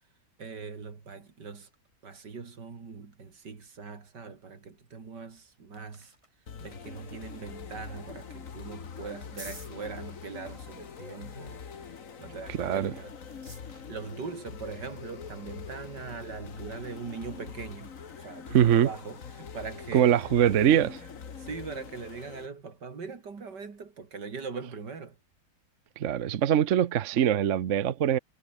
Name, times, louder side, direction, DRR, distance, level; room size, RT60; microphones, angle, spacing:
voice 1, 0.4-1.7 2.0-6.1 6.6-11.6 12.2-13.2 13.9-17.9 18.2-20.1 20.4-21.1 21.4-25.2, right 5 dB, 85° right, 3.4 m, -41 dB
sound 1, 5.3-17.8, right 1 dB, 15° right, 4.4 m, -57 dB
sound 2, 6.5-22.5, left 6 dB, 50° left, 1.9 m, -44 dB
voice 2, 12.5-12.9 18.5-18.9 19.9-21.0 26.0-28.2, right 10 dB, 55° right, 1.0 m, -23 dB
omnidirectional pair, 1.8 m